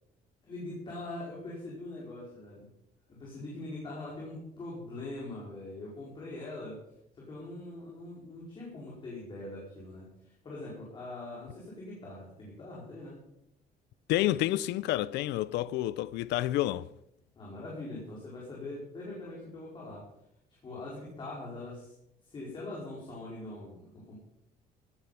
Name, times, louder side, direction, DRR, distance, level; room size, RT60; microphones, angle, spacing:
voice 1, 0.4-2.7 3.1-6.8 7.1-13.2 17.3-20.0 20.6-21.9 22.2-24.1, left 2 dB, 30° left, 5.0 m, -42 dB
voice 2, 14.1-16.9, left 15 dB, 90° left, 0.6 m, -29 dB
16.0 x 11.5 x 5.8 m
cardioid pair, 175°, 17 cm